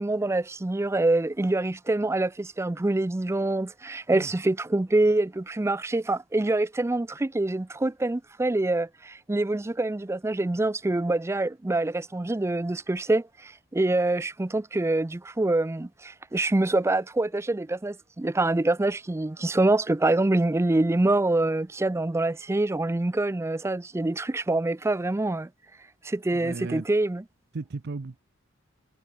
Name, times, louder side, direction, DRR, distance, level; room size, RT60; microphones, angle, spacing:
voice 1, 0.0-25.5 26.0-27.2, right 2 dB, 15° right, 0.4 m, -25 dB
voice 2, 26.3-26.9 27.5-28.2, right 3 dB, 55° right, 0.6 m, -35 dB
head